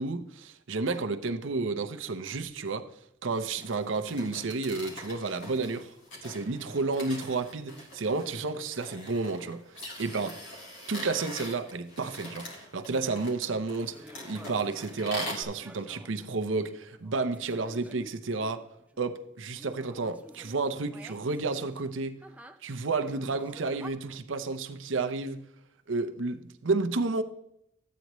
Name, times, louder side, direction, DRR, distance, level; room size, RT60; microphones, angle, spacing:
voice 1, 0.0-2.9 3.2-5.9 6.2-10.3 10.9-18.6 19.0-22.2 22.6-25.5 25.9-27.2, right 3 dB, 85° right, 0.7 m, -31 dB
sound 1, 3.4-15.4, left 1 dB, 90° left, 2.8 m, -43 dB
sound 2, 13.9-19.1 19.5-23.9, right 1 dB, 5° right, 0.4 m, -51 dB
13.0 x 9.3 x 3.1 m
head